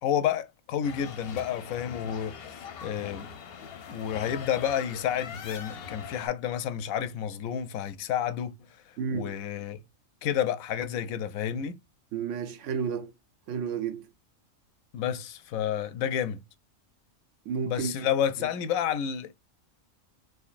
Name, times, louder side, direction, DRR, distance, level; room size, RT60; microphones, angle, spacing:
voice 1, 0.0-3.3 3.9-8.5 8.9-9.8 10.2-11.8 14.9-16.4 17.6-19.3, left 9 dB, 85° left, 1.0 m, -30 dB
sound 1, 0.8-6.3, left 7 dB, 55° left, 0.7 m, -42 dB
voice 2, 9.0-9.3 12.1-13.1 13.5-14.1 17.5-17.9 18.4-18.5, right 6 dB, 70° right, 0.9 m, -31 dB
3.8 x 3.1 x 2.5 m
omnidirectional pair, 1.4 m